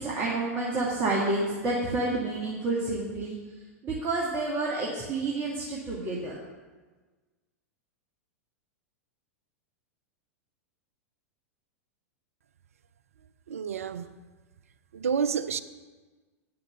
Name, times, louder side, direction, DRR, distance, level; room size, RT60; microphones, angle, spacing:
voice 1, 0.0-3.4 3.8-6.3, right 2 dB, 25° right, 1.7 m, -29 dB
voice 2, 13.5-14.1 14.9-15.6, right 6 dB, 65° right, 0.4 m, -29 dB
9.1 x 5.9 x 6.9 m
figure-of-eight pair, 95°, 8 cm